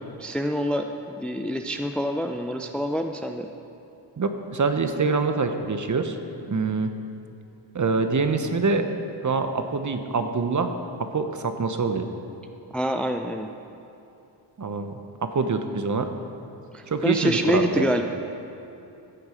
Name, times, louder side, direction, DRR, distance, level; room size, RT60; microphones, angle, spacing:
voice 1, 0.2-3.5 12.7-13.5 16.7-18.0, equal, ahead, 5 dB, 0.6 m, -26 dB
voice 2, 4.2-6.2 6.5-6.9 7.7-8.9 9.2-10.7 11.0-12.1 14.6-16.1 16.9-17.9, right 4 dB, 35° right, 7 dB, 1.1 m, -25 dB
14.5 x 7.9 x 5.2 m, 2.8 s
supercardioid pair, 60°, 50 cm